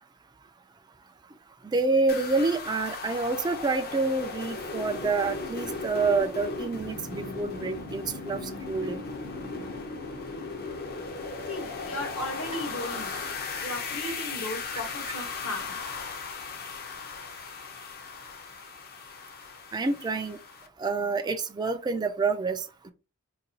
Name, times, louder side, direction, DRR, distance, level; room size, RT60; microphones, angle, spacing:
voice 1, 1.7-8.4 8.7-9.0 14.7-14.8 19.7-20.4 20.8-22.9, right 3 dB, 20° right, 0.3 m, -28 dB
sound 1, 2.1-20.7, left 4 dB, 45° left, 0.6 m, -37 dB
voice 2, 11.5-13.1 13.6-15.8, left 1 dB, 65° left, 1.1 m, -36 dB
4.0 x 2.3 x 2.7 m
head